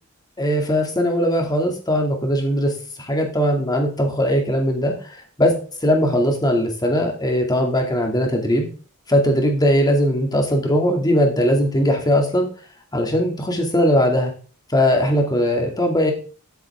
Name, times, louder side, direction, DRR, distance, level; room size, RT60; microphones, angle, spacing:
voice 1, 0.4-2.7 3.0-5.5 5.8-8.7 9.1-12.5 12.9-14.3 14.7-16.1, equal, 20° left, 2 dB, 2.4 m, -19 dB
12.5 x 8.2 x 3.6 m, 0.38 s
head